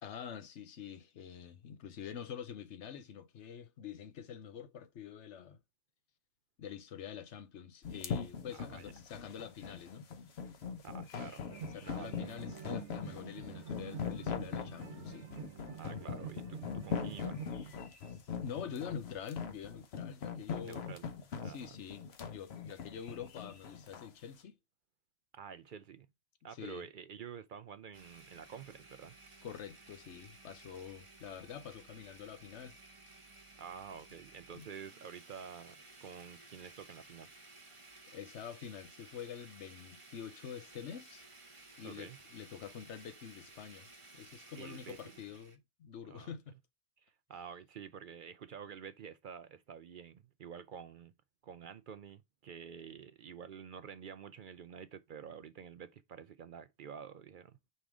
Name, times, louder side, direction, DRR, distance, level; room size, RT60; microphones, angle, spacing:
voice 1, 0.0-5.6 6.6-10.1 11.7-15.3 18.4-20.9 21.4-24.6 26.5-26.9 29.4-32.7 34.5-34.7 38.1-41.3 41.8-46.6, left 8 dB, 85° left, 1.1 m, -46 dB
sound 1, 7.8-24.1, left 6 dB, 65° left, 1.1 m, -41 dB
voice 2, 8.5-8.8 10.8-11.4 11.8-12.3 15.7-17.4 20.6-21.1 21.4-21.7 25.3-26.1 26.4-29.2 33.6-37.3 41.8-42.2 44.6-45.0 46.1-46.3 47.0-51.1 51.4-57.6, right 7 dB, 60° right, 0.6 m, -49 dB
sound 2, 11.5-17.7, right 7 dB, 75° right, 1.2 m, -48 dB
Domestic sounds home sounds, 27.9-45.6, right 2 dB, 30° right, 1.0 m, -57 dB
5.3 x 3.7 x 4.7 m
omnidirectional pair, 1.2 m